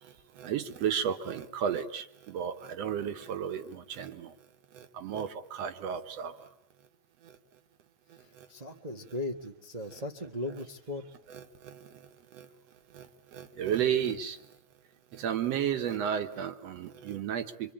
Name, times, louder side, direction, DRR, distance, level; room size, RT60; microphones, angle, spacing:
voice 1, 0.0-4.4 4.7-6.5 7.2-7.3 8.1-8.5 11.3-12.5 12.9-14.4 15.1-17.7, right 8 dB, 65° right, 8 dB, 2.3 m, -33 dB
voice 2, 8.5-11.0, left 1 dB, 40° right, 3 dB, 0.5 m, -37 dB
26.0 x 25.0 x 8.8 m, 0.76 s
omnidirectional pair, 3.3 m